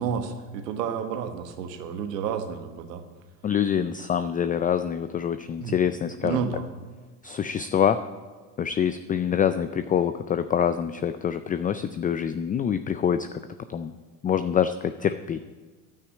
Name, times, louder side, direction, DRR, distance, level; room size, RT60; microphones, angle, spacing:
voice 1, 0.0-3.0 5.6-5.7 6.2-6.6, right 7 dB, 85° right, 7 dB, 1.4 m, -30 dB
voice 2, 3.4-6.5 7.2-8.0 8.6-13.4 13.7-13.9 14.2-15.4, left 8 dB, 20° left, 11 dB, 0.3 m, -25 dB
9.9 x 9.1 x 8.6 m, 1.3 s
hypercardioid pair, 80°, 47 cm